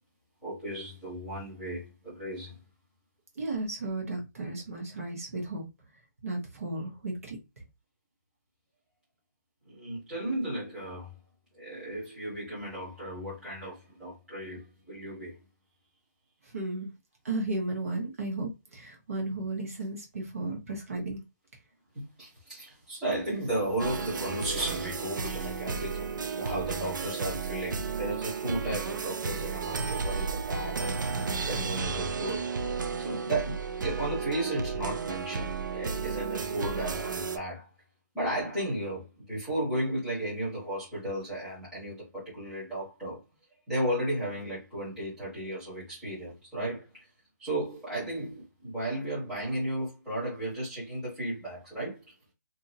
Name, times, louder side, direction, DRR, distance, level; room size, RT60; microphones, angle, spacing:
voice 1, 0.4-2.6 9.6-11.1 11.5-15.4 21.9-31.0 31.5-32.4 33.0-37.7 38.1-43.2 43.7-47.0 47.4-52.1, right 1 dB, 5° right, 1.2 m, -34 dB
voice 2, 3.3-5.6 6.2-7.4 16.4-16.9 17.2-21.2, right 2 dB, 50° right, 1.1 m, -34 dB
sound 1, 23.8-37.4, right 5 dB, 85° right, 0.5 m, -33 dB
2.8 x 2.6 x 2.6 m
hypercardioid pair, 180°, 10 cm